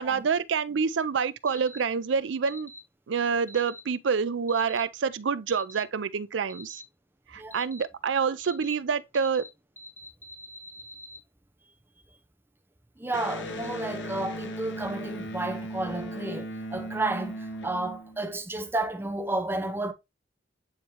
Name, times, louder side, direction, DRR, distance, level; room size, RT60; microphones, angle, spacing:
voice 1, 0.0-2.7 3.1-6.8 7.3-9.4, right 6 dB, 75° right, 0.5 m, -27 dB
sound 1, 1.5-1.8 2.5-2.8 3.5-3.8 4.5-4.8 5.5-5.8 6.5-6.8 7.5-7.8 8.4-8.7 9.1-9.5 9.8-11.2, equal, 10° left, 1.6 m, -46 dB
voice 2, 13.0-19.9, right 2 dB, 10° right, 0.7 m, -32 dB
Electric guitar, 13.1-18.6, equal, 75° left, 0.9 m, -37 dB
8.7 x 3.7 x 2.9 m
head